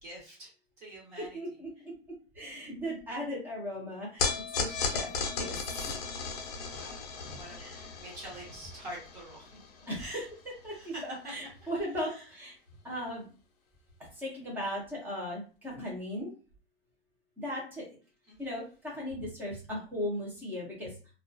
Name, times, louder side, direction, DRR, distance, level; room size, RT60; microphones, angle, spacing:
voice 1, 0.0-0.5 0.8-1.4 6.7-9.6 9.9-10.3 10.7-11.0 11.6-11.7 12.0-12.4 18.3-18.5, right 1 dB, 40° right, -4 dB, 1.2 m, -46 dB
voice 2, 1.2-1.9 2.3-4.3 4.5-5.1 5.3-5.6 5.9-6.0 7.6-7.8 9.9-10.1 10.6-12.5 12.8-13.3 14.1-16.3 17.4-17.8 18.4-20.9, equal, 5° right, -3 dB, 0.6 m, -37 dB
sound 1, 4.2-10.6, left 5 dB, 40° left, 0.6 m, -36 dB
2.3 x 2.3 x 2.5 m, 0.37 s
supercardioid pair, 160°, 31 cm